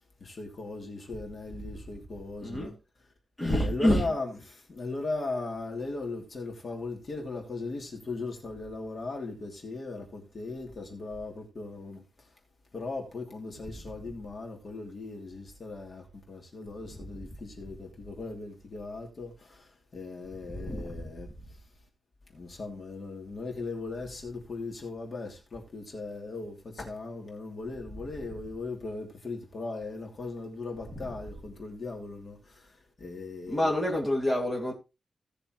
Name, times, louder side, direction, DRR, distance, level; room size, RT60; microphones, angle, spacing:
voice 1, 0.2-2.7 3.6-12.0 12.7-21.3 22.3-33.7, left 3 dB, 45° left, 2.9 m, -38 dB
voice 2, 2.4-2.7 3.4-4.2 16.9-17.0 20.5-21.1 33.5-34.7, left 1 dB, 15° left, 3.0 m, -27 dB
17.5 x 6.7 x 3.1 m
wide cardioid pair, 175°, 0 cm